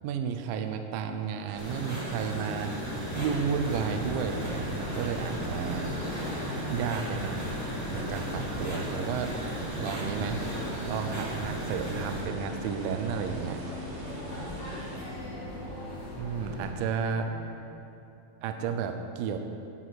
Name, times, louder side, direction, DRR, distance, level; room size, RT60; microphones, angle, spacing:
voice 1, 0.0-5.9 6.7-7.6 7.9-9.4 9.7-10.5 10.8-13.6 16.2-17.3 18.4-19.4, right 7 dB, 80° right, 6 dB, 2.3 m, -32 dB
sound 1, 1.5-15.2, right 1 dB, 55° right, 1.9 m, -44 dB
sound 2, 1.6-12.2, right 1 dB, 10° right, 0.9 m, -36 dB
sound 3, 2.8-16.7, left 1 dB, 35° left, 2.0 m, -39 dB
voice 2, 5.1-5.8 14.1-15.0 17.0-17.8, left 1 dB, 65° left, -6 dB, 3.6 m, -49 dB
11.0 x 7.7 x 4.1 m, 2.7 s
omnidirectional pair, 4.3 m